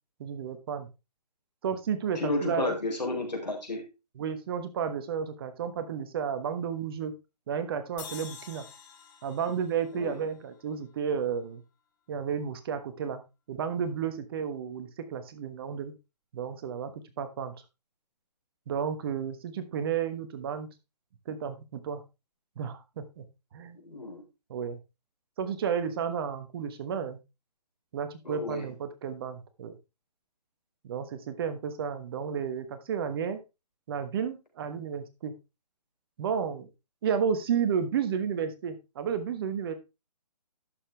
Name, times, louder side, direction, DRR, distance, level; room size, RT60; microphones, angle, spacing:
voice 1, 0.2-0.9 1.6-2.7 4.2-7.1 7.5-8.6 9.2-11.6 12.1-13.2 13.5-15.9 16.3-16.9 17.2-17.5 18.7-20.7 21.3-22.0 22.6-23.2 23.5-23.8 24.5-24.8 25.4-27.2 27.9-29.8 30.8-33.4 33.9-35.3 36.2-36.7 37.0-39.7, right 7 dB, 35° right, 9 dB, 1.2 m, -32 dB
voice 2, 2.1-3.9 9.9-10.1 23.8-24.2 28.2-28.6, left 2 dB, 90° left, 2 dB, 4.3 m, -32 dB
sound 1, 8.0-11.2, left 7 dB, 30° left, 1.8 m, -48 dB
11.0 x 6.8 x 3.3 m, 0.26 s
figure-of-eight pair, 145°, 21 cm